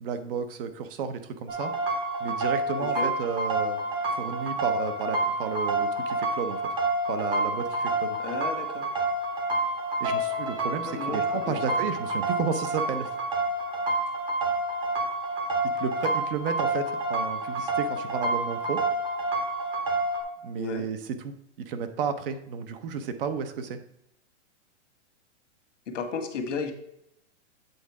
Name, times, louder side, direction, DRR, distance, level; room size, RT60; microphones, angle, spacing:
voice 1, 0.0-1.7 2.2-3.8 4.2-6.6 7.1-8.2 10.0-13.1 15.6-18.8 20.4-23.8, right 6 dB, 50° right, 10 dB, 0.8 m, -32 dB
sound 1, 1.5-20.2, right 2 dB, 15° right, 0.8 m, -28 dB
voice 2, 2.8-3.1 8.2-8.9 10.8-11.8 20.5-20.8 25.9-26.7, left 5 dB, 85° left, 6 dB, 1.5 m, -34 dB
8.0 x 3.7 x 4.7 m, 0.78 s
hypercardioid pair, 160°, 36 cm